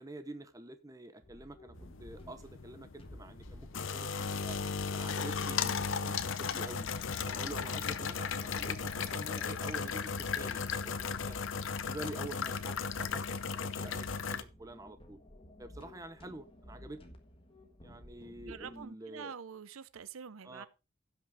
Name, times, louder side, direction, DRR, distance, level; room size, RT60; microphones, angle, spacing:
voice 1, 0.0-4.6 4.9-6.9 7.2-11.4 11.9-15.2 15.6-17.0 17.8-19.4 20.4-20.7, right 2 dB, 15° right, 0.8 m, -47 dB
sound 1, 1.2-18.8, left 1 dB, 25° left, 1.5 m, -54 dB
sound 2, 1.8-14.4, left 5 dB, 65° left, 0.7 m, -36 dB
voice 2, 18.4-20.7, right 6 dB, 80° right, 0.6 m, -46 dB
16.0 x 6.0 x 3.5 m
head